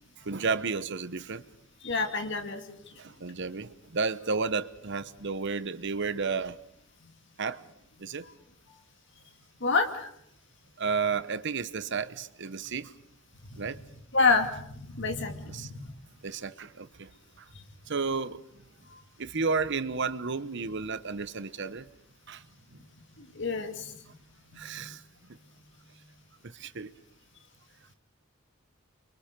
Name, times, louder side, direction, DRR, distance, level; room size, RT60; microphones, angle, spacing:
voice 1, 0.3-1.4 3.0-6.6 7.4-7.6 8.0-8.2 10.8-12.9 13.6-13.8 15.5-15.7 16.2-16.9 17.9-18.4 19.2-21.8 22.3-22.4 24.5-25.0 26.6-26.9, right 4 dB, 60° right, 1.0 m, -32 dB
voice 2, 1.8-2.8 9.6-10.1 13.5-13.8 14.1-15.9 18.9-19.0 23.2-24.1 24.5-24.9, left 4 dB, 60° left, 2.3 m, -29 dB
29.5 x 24.0 x 5.2 m
head